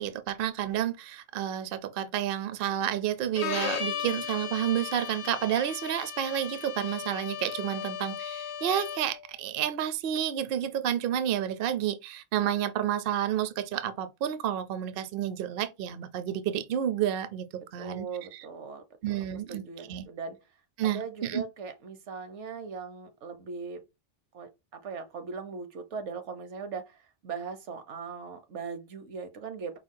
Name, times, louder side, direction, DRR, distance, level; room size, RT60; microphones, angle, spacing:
voice 1, 0.0-17.4 17.7-18.1 18.3-18.5 19.0-19.6 19.9-20.1 20.8-21.4, right 10 dB, 60° right, 0.7 m, -30 dB
Bowed string instrument, 3.4-9.2, left 8 dB, 70° left, 0.8 m, -36 dB
voice 2, 17.8-19.2 19.5-20.4 20.8-23.8 24.3-29.8, right 5 dB, 75° right, 1.1 m, -39 dB
5.1 x 2.3 x 3.7 m
omnidirectional pair, 1.2 m